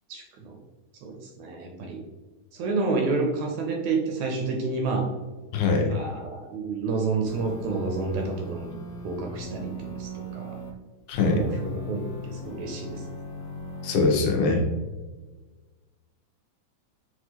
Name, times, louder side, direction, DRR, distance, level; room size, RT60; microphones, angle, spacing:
voice 1, 0.1-0.6 1.0-2.0 2.5-5.1 5.9-10.6 11.3-13.0, right 3 dB, 80° right, 2 dB, 1.7 m, -29 dB
voice 2, 5.5-5.9 11.1-11.5 13.8-14.7, left 3 dB, 80° left, 2 dB, 2.0 m, -22 dB
sound 1, 7.3-10.7 11.1-14.1, left 1 dB, 65° left, 1.9 m, -38 dB
5.9 x 2.4 x 2.8 m, 1.2 s
omnidirectional pair, 3.5 m